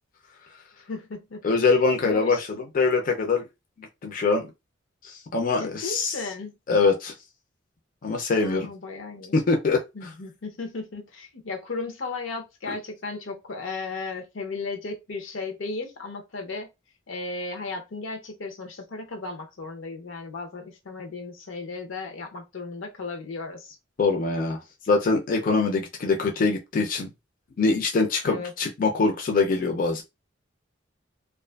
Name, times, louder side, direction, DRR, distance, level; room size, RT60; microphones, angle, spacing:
voice 1, 0.9-1.4 2.0-2.4 5.6-6.5 8.4-9.4 9.9-16.7 17.1-23.8 28.2-28.5, left 3 dB, 90° left, 0.6 m, -35 dB
voice 2, 1.4-2.5 2.7-3.4 4.0-4.4 5.0-6.2 6.7-7.1 8.0-8.7 9.3-9.8 12.7-12.8 24.0-24.6 24.9-27.1 27.6-30.0, left 4 dB, 45° left, 0.4 m, -23 dB
2.4 x 2.4 x 2.2 m
head